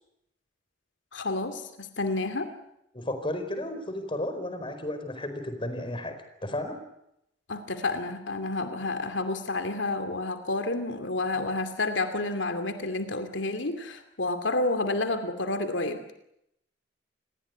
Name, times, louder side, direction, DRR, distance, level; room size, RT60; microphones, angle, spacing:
voice 1, 1.1-2.5 7.5-16.1, left 2 dB, 90° left, 8 dB, 2.7 m, -30 dB
voice 2, 2.9-6.1 6.4-6.7, left 1 dB, 30° left, 9 dB, 4.6 m, -33 dB
28.5 x 20.5 x 9.5 m, 0.81 s
head